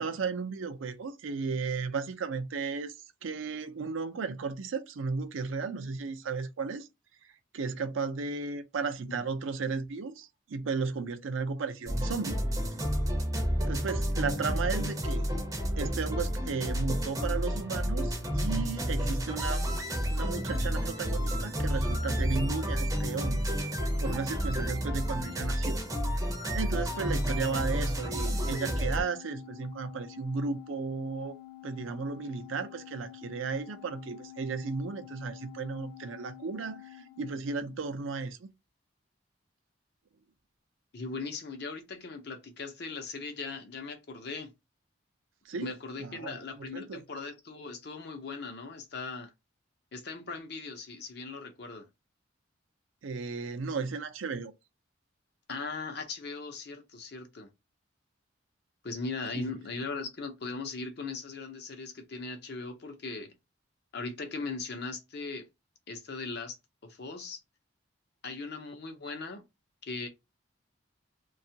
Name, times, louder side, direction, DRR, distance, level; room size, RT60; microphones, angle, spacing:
voice 1, 0.0-2.9 3.2-6.9 7.5-12.4 13.7-15.3 15.8-19.7 20.1-23.4 24.0-25.8 26.5-31.3 31.6-38.5 45.5-45.7 46.0-47.0 53.0-54.5 59.3-59.5, right 4 dB, 80° right, 0.5 m, -34 dB
sound 1, 11.9-29.0, equal, 15° right, 0.5 m, -30 dB
Organ, 26.9-38.1, left 16 dB, 90° left, 0.3 m, -50 dB
voice 2, 40.9-44.5 45.6-49.3 49.9-51.9 55.5-57.5 58.8-63.3 63.9-65.5 65.9-66.6 66.8-67.4 68.2-69.4 69.8-70.1, left 4 dB, 55° left, 0.6 m, -39 dB
2.5 x 2.3 x 2.7 m
head